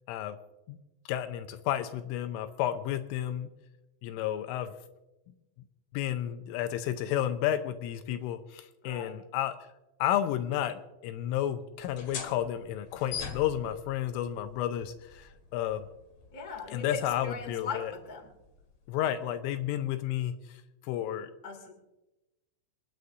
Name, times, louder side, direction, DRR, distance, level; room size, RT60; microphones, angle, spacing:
voice 1, 1.1-3.5 4.0-4.8 5.9-9.5 10.0-15.9 16.7-17.9 18.9-20.3 20.8-21.3, left 11 dB, 85° left, 8 dB, 3.1 m, -31 dB
voice 2, 8.8-9.1 16.3-18.3 21.4-21.7, left 5 dB, 45° left, 2 dB, 1.1 m, -40 dB
sound 1, 11.8-19.1, left 6 dB, 60° left, 1.7 m, -45 dB
28.0 x 9.5 x 2.6 m, 0.98 s
omnidirectional pair, 6.0 m